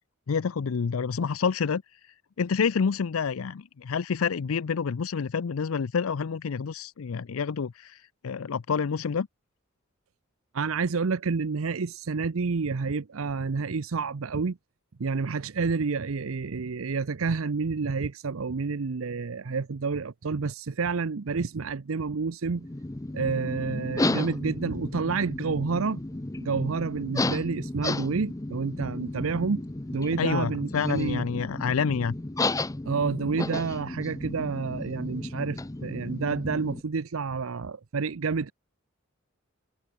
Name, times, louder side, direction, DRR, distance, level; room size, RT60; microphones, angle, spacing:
voice 1, 0.3-2.0 2.4-9.3 30.2-32.2, left 6 dB, 90° left, 0.5 m, -28 dB
voice 2, 10.5-14.6 15.0-22.7 23.1-26.0 26.4-29.6 29.9-31.2 32.8-38.5, right 4 dB, 80° right, 0.7 m, -29 dB
sound 1, 22.6-36.8, left 2 dB, 15° left, 0.6 m, -33 dB
head